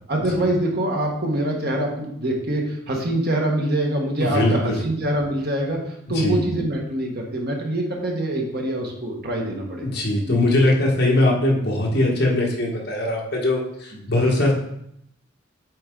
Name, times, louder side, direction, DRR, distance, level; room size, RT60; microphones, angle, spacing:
voice 1, 0.1-9.9 10.3-10.4, right 1 dB, 50° right, 0 dB, 1.3 m, -24 dB
voice 2, 4.2-4.8 6.1-6.4 9.8-14.5, left 1 dB, 55° left, -2 dB, 1.6 m, -21 dB
7.9 x 4.3 x 3.8 m, 0.74 s
head